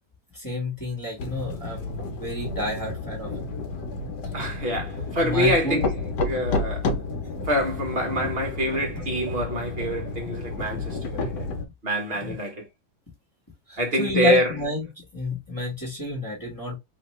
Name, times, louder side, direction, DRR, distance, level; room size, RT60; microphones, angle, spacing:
voice 1, 0.3-3.5 5.2-5.8 12.2-12.4 13.7-16.8, left 2 dB, 10° left, 1.2 m, -30 dB
sound 1, 1.2-11.7, left 3 dB, 70° left, 1.3 m, -31 dB
voice 2, 4.3-5.9 6.3-6.8 7.4-11.3 11.8-12.6 13.8-14.5, equal, 35° right, 1.2 m, -25 dB
3.2 x 2.9 x 3.0 m
omnidirectional pair, 2.0 m